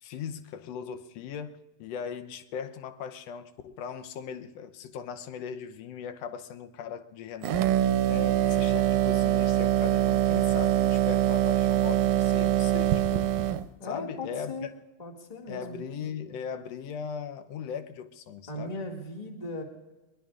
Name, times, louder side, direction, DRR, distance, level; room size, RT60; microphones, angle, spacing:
voice 1, 0.0-13.5 13.8-14.7 15.5-18.8, left 7 dB, 70° left, 1.7 m, -39 dB
sound 1, 7.4-13.7, right 12 dB, 85° right, 2.0 m, -24 dB
voice 2, 13.8-14.7 15.0-15.8 18.5-19.6, left 1 dB, 15° left, 1.6 m, -38 dB
23.0 x 22.0 x 2.4 m
omnidirectional pair, 3.4 m